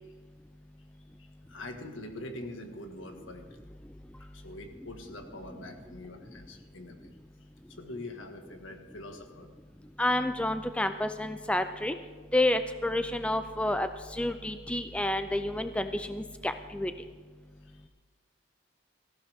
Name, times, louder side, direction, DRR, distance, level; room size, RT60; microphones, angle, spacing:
voice 1, 1.5-3.4 4.3-7.1 7.7-9.5, left 1 dB, 90° left, 4 dB, 1.8 m, -43 dB
voice 2, 10.0-11.9 12.3-16.9, left 1 dB, 5° left, 9 dB, 0.4 m, -29 dB
17.5 x 14.5 x 3.6 m, 1.5 s
head